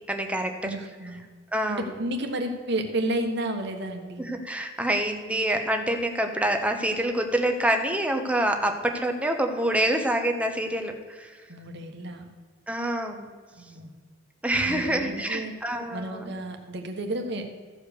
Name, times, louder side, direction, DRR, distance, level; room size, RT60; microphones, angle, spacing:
voice 1, 0.1-0.8 1.5-1.9 4.2-11.3 12.7-13.3 14.4-16.3, right 1 dB, 5° right, 4 dB, 1.0 m, -26 dB
voice 2, 0.6-1.2 1.7-4.2 11.5-12.3 13.5-13.9 14.6-15.5 15.9-17.5, right 1 dB, 60° right, 4 dB, 1.4 m, -31 dB
14.0 x 5.0 x 6.7 m, 1.5 s
head